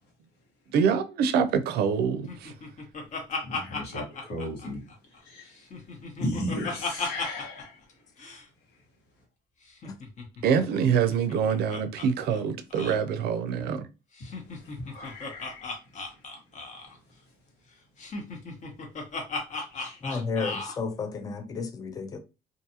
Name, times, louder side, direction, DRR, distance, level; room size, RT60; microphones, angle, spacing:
voice 1, 0.7-2.5 10.4-13.9, right 7 dB, 70° right, 0.4 m, -25 dB
Laughter, 2.3-5.2 5.5-7.6 7.9-8.0 8.2-8.4 9.7-12.1 12.3-12.4 12.7-13.0 14.2-17.0 18.0-20.8, left 3 dB, 45° left, 0.8 m, -36 dB
voice 2, 3.4-4.8 5.2-5.5 6.2-7.8 14.6-15.8 19.7-20.0, left 1 dB, 80° left, 1.4 m, -35 dB
voice 3, 20.0-22.2, left 4 dB, 20° left, 0.4 m, -32 dB
2.5 x 2.3 x 2.7 m
cardioid pair, 110°, 17 cm